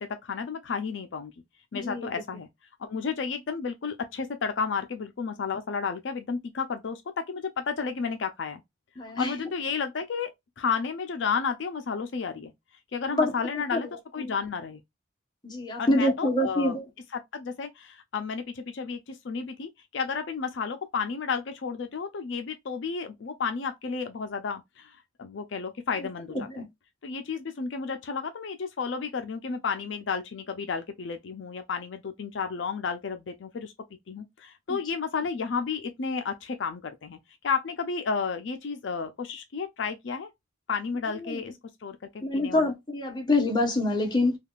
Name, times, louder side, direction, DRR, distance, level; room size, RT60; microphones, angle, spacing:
voice 1, 0.2-1.3 1.7-2.5 2.8-8.6 9.2-10.3 10.6-12.5 12.9-14.8 15.8-16.8 17.1-26.7 27.0-33.7 34.1-37.2 37.4-40.3 40.7-41.5 41.8-42.0 42.3-42.7, left 5 dB, 65° left, 0.5 m, -32 dB
voice 2, 1.7-2.1 9.0-9.3 13.1-13.3 14.2-14.3 15.4-16.8 26.3-26.6 34.7-34.8 41.3-41.4 42.2-44.4, left 2 dB, 20° left, 1.0 m, -26 dB
3.4 x 2.4 x 2.3 m
head